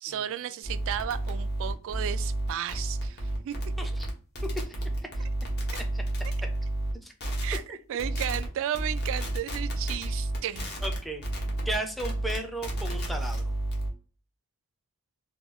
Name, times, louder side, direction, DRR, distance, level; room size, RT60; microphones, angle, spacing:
voice 1, 0.0-3.6 7.4-10.7, right 10 dB, 65° right, 0.3 m, -34 dB
sound 1, 0.6-6.9 7.2-7.6 8.0-8.5 8.7-13.9, right 1 dB, 50° left, 1.0 m, -31 dB
voice 2, 10.8-11.3 11.7-13.4, right 1 dB, ahead, 0.5 m, -34 dB
3.0 x 2.3 x 3.5 m
head